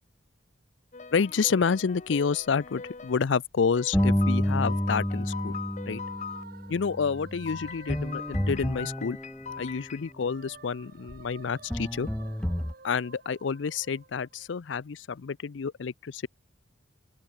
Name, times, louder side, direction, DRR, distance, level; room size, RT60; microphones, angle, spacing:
sound 1, 0.9-3.2 3.8-6.4 7.5-10.1, left 6 dB, 40° left, 1.1 m, -41 dB
voice 1, 1.1-5.6 5.9-6.0 6.7-9.2 9.6-12.1 12.8-16.3, left 5 dB, 70° left, 0.5 m, -29 dB
sound 2, 3.9-9.8 11.1-11.2 11.7-12.7, equal, 5° left, 0.4 m, -30 dB
sound 3, 4.8-9.6 9.9-14.7, right 5 dB, 50° right, 2.0 m, -52 dB
open air
head